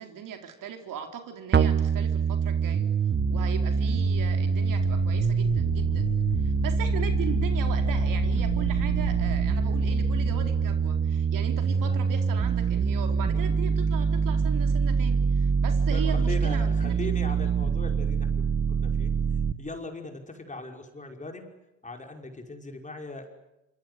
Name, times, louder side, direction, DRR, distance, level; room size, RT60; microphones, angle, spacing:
voice 1, 0.0-2.8 3.3-6.1 6.4-16.9, right 9 dB, 50° right, 5 dB, 4.3 m, -38 dB
sound 1, 1.5-19.5, right 6 dB, 25° right, 1.5 m, -25 dB
sound 2, 3.2-11.4, left 8 dB, 85° left, 2.1 m, -36 dB
voice 2, 15.9-18.4 18.7-19.1 19.6-21.5 21.8-23.3, left 2 dB, 20° left, 4 dB, 5.5 m, -39 dB
27.0 x 25.5 x 8.3 m, 0.96 s
hypercardioid pair, 75°, 40 cm